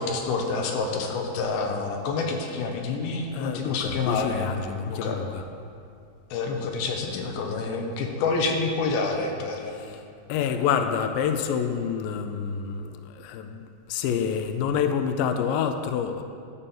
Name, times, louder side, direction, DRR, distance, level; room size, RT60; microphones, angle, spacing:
voice 1, 0.0-4.5 4.9-5.2 6.3-9.9 10.4-10.5, left 4 dB, 75° left, 2 dB, 2.7 m, -28 dB
voice 2, 3.3-5.4 9.7-10.0 10.3-16.2, left 7 dB, 90° left, 7 dB, 2.0 m, -28 dB
12.5 x 4.2 x 7.1 m, 2.4 s
omnidirectional pair, 4.7 m